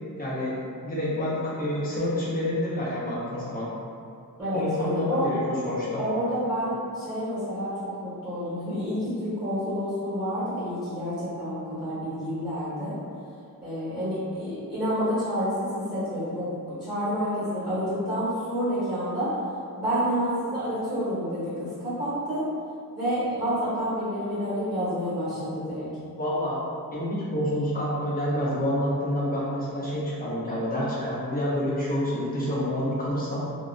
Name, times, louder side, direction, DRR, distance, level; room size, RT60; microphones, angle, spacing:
voice 1, 0.2-0.6 0.8-3.6 4.5-6.0 26.2-26.6 26.9-33.4, left 1 dB, 25° left, -9 dB, 0.7 m, -28 dB
voice 2, 4.4-5.2 6.0-7.7 8.0-12.9 13.6-16.5 16.8-19.3 19.8-22.4 22.9-25.9, equal, 10° right, -14 dB, 1.1 m, -29 dB
2.6 x 2.2 x 2.5 m, 2.4 s
wide cardioid pair, 140°, 36 cm